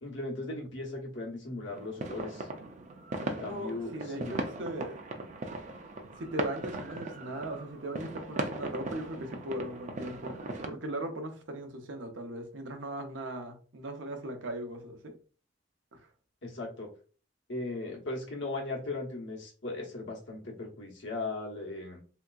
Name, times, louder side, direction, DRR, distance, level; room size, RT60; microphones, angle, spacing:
voice 1, 0.0-2.5 3.2-4.3 16.4-16.9 17.5-22.0, left 2 dB, 70° left, 1.0 m, -38 dB
sound 1, 1.7-10.7, right 2 dB, 40° right, 0.4 m, -38 dB
voice 2, 3.4-5.0 6.2-10.4 10.6-15.2 15.9-16.0, right 1 dB, 70° right, 0.7 m, -38 dB
3.5 x 2.8 x 2.3 m
head